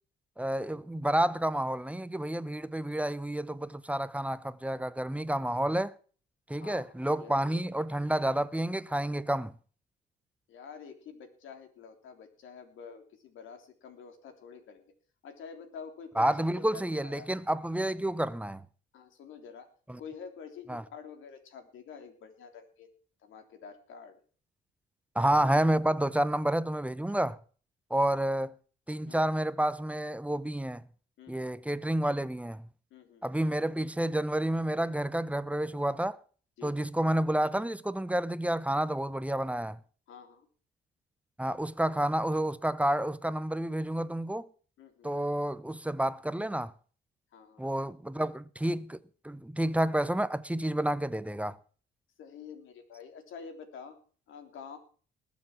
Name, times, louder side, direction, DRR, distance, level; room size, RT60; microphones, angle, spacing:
voice 1, 0.4-5.9 6.5-9.5 16.2-18.6 19.9-20.0 20.7-20.8 25.1-27.4 27.9-28.5 28.9-30.8 31.3-32.6 33.2-36.2 36.6-39.8 41.4-44.5 45.0-46.7 47.6-49.0 49.2-51.6, right 1 dB, 5° right, 0.8 m, -29 dB
voice 2, 6.6-8.0 10.5-14.9 15.2-17.3 18.9-19.7 20.0-22.9 23.2-24.2 28.1-28.2 29.1-29.2 31.2-31.5 32.9-33.2 36.6-36.8 40.1-40.5 44.8-45.1 47.3-47.6 52.2-54.0 54.3-54.8, left 6 dB, 80° left, 3.4 m, -48 dB
20.0 x 7.2 x 6.0 m
cardioid pair, 90°, 20 cm